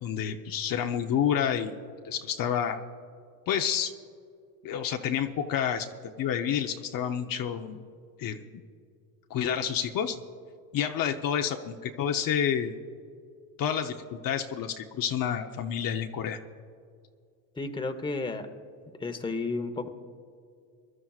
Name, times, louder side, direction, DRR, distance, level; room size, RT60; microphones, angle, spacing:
voice 1, 0.0-2.8 3.5-3.9 4.6-5.9 6.2-7.8 8.2-8.6 9.3-10.2 10.7-12.7 13.6-16.4, left 8 dB, 50° left, 5 dB, 0.8 m, -29 dB
voice 2, 17.6-18.5 19.0-19.9, left 3 dB, 10° left, 6 dB, 1.0 m, -32 dB
23.0 x 12.5 x 2.4 m, 2.3 s
cardioid pair, 110°, 42 cm